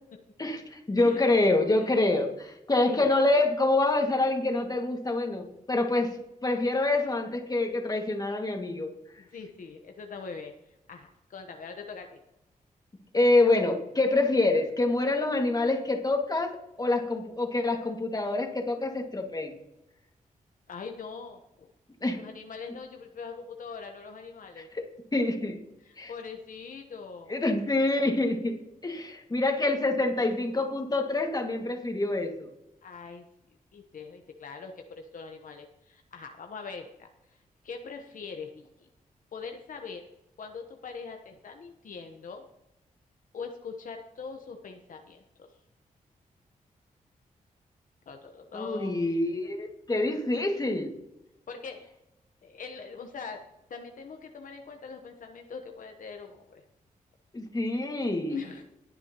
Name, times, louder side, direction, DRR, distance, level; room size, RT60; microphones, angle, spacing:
voice 1, 0.4-6.2 6.4-8.9 13.1-19.5 22.0-22.2 24.7-24.8 25.1-25.6 26.0-26.1 27.3-32.5 48.5-50.9 57.3-58.4, left 2 dB, 25° left, 3 dB, 2.1 m, -26 dB
voice 2, 9.3-10.5 10.9-12.2 20.7-21.7 22.1-24.7 25.8-27.3 32.8-33.3 33.7-37.1 37.6-38.7 39.3-40.1 40.4-42.5 43.3-45.5 48.1-49.0 51.5-51.9 52.4-53.4 53.7-56.6 58.3-58.6, left 5 dB, 70° left, 4 dB, 1.1 m, -42 dB
20.5 x 6.9 x 3.0 m, 0.90 s
cardioid pair, 80°, 14 cm